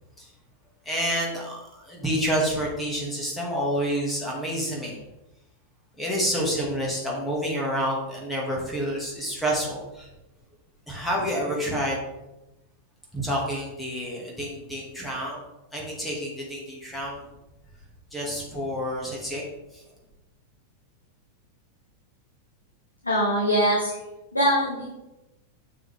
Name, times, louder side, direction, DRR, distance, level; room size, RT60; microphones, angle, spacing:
voice 1, 0.8-5.0 6.0-10.1 10.9-12.0 13.1-15.4 15.7-17.3 18.1-19.8, equal, 5° left, -4 dB, 2.3 m, -29 dB
voice 2, 23.0-24.0 24.3-24.9, equal, 85° left, -5 dB, 1.6 m, -22 dB
7.3 x 6.1 x 3.5 m, 0.98 s
figure-of-eight pair, 90°, 0 cm